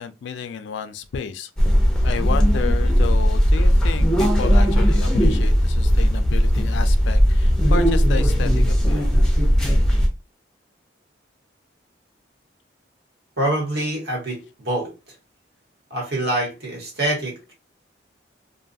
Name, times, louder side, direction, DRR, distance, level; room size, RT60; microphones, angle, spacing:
voice 1, 0.0-1.5 2.0-9.1, left 6 dB, 75° left, 0.3 m, -31 dB
sound 1, 1.6-10.1, equal, 5° left, 0.4 m, -17 dB
voice 2, 13.4-14.9 15.9-17.5, right 1 dB, 60° right, 1.2 m, -25 dB
2.5 x 2.3 x 2.6 m
head